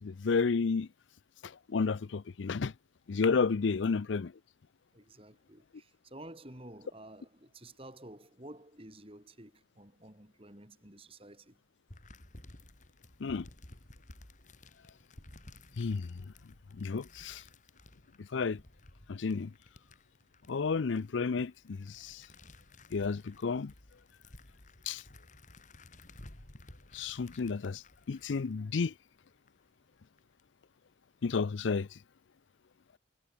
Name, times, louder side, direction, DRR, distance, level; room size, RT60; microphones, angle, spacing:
voice 1, 0.0-0.9 1.4-2.7 3.1-4.3 13.2-13.5 15.8-16.1 16.7-17.4 18.2-18.6 19.1-19.5 20.5-22.2 22.9-23.7 24.9-25.0 26.9-28.9 31.2-31.9, left 4 dB, 75° left, 0.5 m, -31 dB
voice 2, 4.9-11.6, right 1 dB, 30° right, 4.0 m, -51 dB
sound 1, 11.9-29.5 30.0-30.4, left 1 dB, 40° left, 2.8 m, -55 dB
head